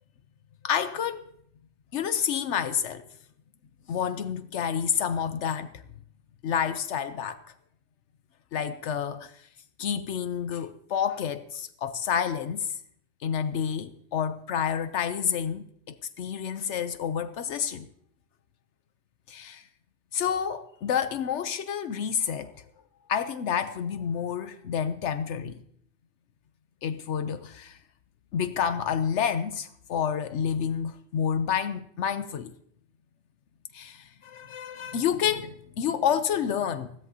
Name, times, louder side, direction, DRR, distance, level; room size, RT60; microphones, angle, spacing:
voice 1, 0.6-1.3 1.9-3.1 3.9-5.8 6.4-7.4 8.5-9.5 9.8-12.8 13.2-17.9 19.3-19.7 20.1-22.5 23.1-25.6 26.8-27.8 28.3-32.5 33.7-36.9, left 8 dB, 80° left, 1.0 m, -29 dB
21.0 x 16.0 x 2.8 m
omnidirectional pair, 1.2 m